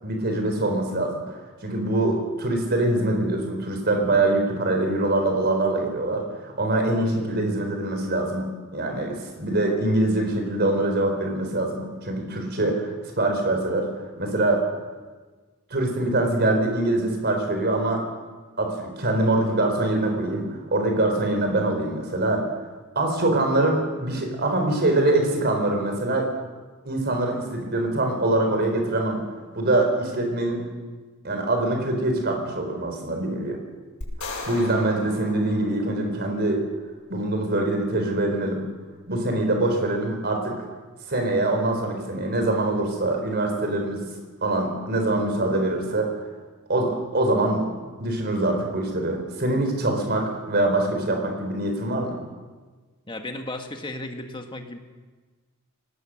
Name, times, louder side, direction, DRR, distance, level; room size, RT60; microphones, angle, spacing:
voice 1, 0.0-8.5 8.7-13.9 14.2-14.6 15.7-18.0 18.6-22.5 22.9-26.3 26.8-29.2 29.5-30.7 31.2-33.6 34.5-36.6 37.1-38.6 39.1-40.6 41.1-44.0 44.4-46.1 46.7-52.2, right 2 dB, 50° right, 3 dB, 4.3 m, -24 dB
sound 1, 34.0-36.4, left 2 dB, 90° left, 5.7 m, -37 dB
voice 2, 53.1-54.8, left 2 dB, 20° left, 5 dB, 1.8 m, -34 dB
22.5 x 18.0 x 6.5 m, 1.4 s
head